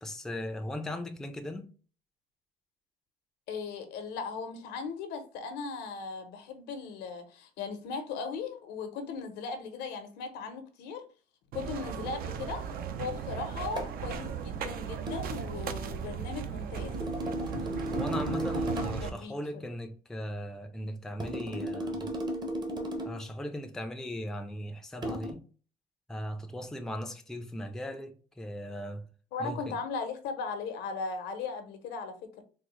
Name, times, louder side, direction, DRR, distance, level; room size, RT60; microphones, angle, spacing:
voice 1, 0.0-1.7 17.4-22.1 23.1-25.4 26.1-29.1 29.4-29.8, left 1 dB, 5° left, 0.4 m, -38 dB
voice 2, 3.5-11.1 11.5-12.6 13.0-17.3 19.0-19.6 29.3-32.4, left 5 dB, 85° left, 0.7 m, -38 dB
sound 1, 11.5-19.1, right 8 dB, 60° right, 0.4 m, -37 dB
sound 2, 13.8-14.0 15.1-15.3 16.8-19.1 21.2-23.3 25.0-25.3, equal, 25° right, 0.7 m, -34 dB
3.7 x 2.0 x 3.0 m
cardioid pair, 110°, 17 cm